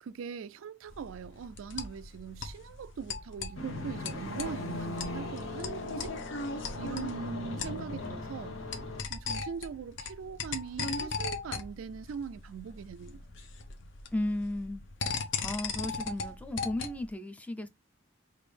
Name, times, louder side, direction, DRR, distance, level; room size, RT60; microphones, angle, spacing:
voice 1, 0.0-6.1 6.5-8.6 9.1-13.3, right 6 dB, 85° right, 0.3 m, -41 dB
sound 1, 0.9-17.1, left 4 dB, 65° left, 0.7 m, -39 dB
sound 2, 3.6-9.0, left 2 dB, 80° left, 1.1 m, -39 dB
voice 2, 14.1-15.1 15.4-17.7, left 1 dB, 5° left, 0.4 m, -35 dB
4.8 x 2.6 x 3.2 m
head